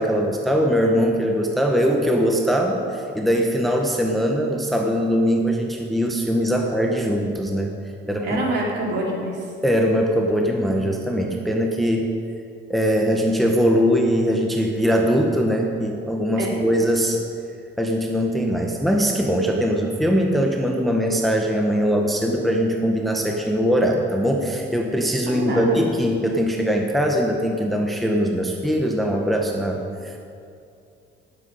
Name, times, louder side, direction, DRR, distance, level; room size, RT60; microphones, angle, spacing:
voice 1, 0.0-7.7 8.1-8.4 9.6-12.1 12.7-17.2 17.8-30.2, equal, ahead, 1 dB, 0.7 m, -21 dB
voice 2, 8.0-9.5 16.4-16.6 25.3-25.8, right 1 dB, 55° right, -2 dB, 3.1 m, -26 dB
19.5 x 7.7 x 5.2 m, 2.5 s
cardioid pair, 175°, 20 cm